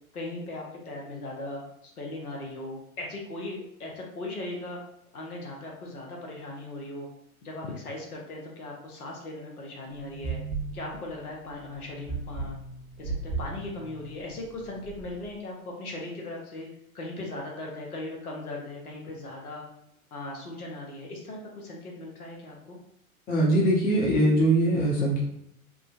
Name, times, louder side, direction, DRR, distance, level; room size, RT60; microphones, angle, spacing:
voice 1, 0.1-4.8 5.1-7.1 7.4-10.4 10.7-12.6 13.0-16.7 16.9-19.6 20.1-22.8, left 2 dB, 80° left, -1 dB, 0.9 m, -38 dB
sound 1, 9.9-15.3, right 4 dB, 20° right, 0.6 m, -37 dB
voice 2, 23.3-25.2, right 1 dB, 20° left, -2 dB, 0.8 m, -22 dB
3.6 x 2.1 x 2.5 m, 0.76 s
figure-of-eight pair, 95°, 44 cm